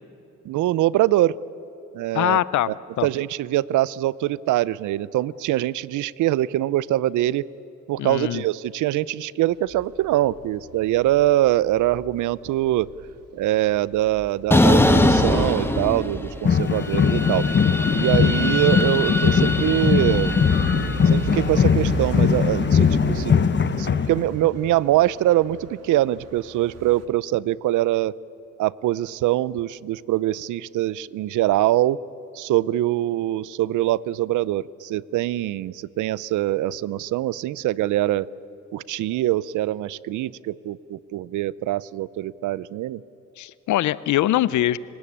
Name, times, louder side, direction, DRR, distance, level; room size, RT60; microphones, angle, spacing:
voice 1, 0.4-1.3 1.9-2.7 3.0-7.5 7.9-12.9 13.3-17.5 18.0-20.5 21.1-23.3 23.8-28.1 28.6-32.0 32.3-38.3 38.7-43.0, right 14 dB, 80° right, 21 dB, 0.6 m, -23 dB
voice 2, 2.1-3.1 8.0-8.4 43.4-44.8, left 13 dB, 70° left, 19 dB, 0.7 m, -22 dB
sound 1, 9.7-27.1, right 5 dB, 55° right, 1.9 m, -37 dB
sound 2, 14.5-16.5 16.8-21.1, left 1 dB, 10° left, 1.7 m, -22 dB
sound 3, 16.4-24.5, left 6 dB, 35° left, 1.2 m, -20 dB
29.5 x 17.0 x 8.7 m, 2.9 s
cardioid pair, 90°, 30 cm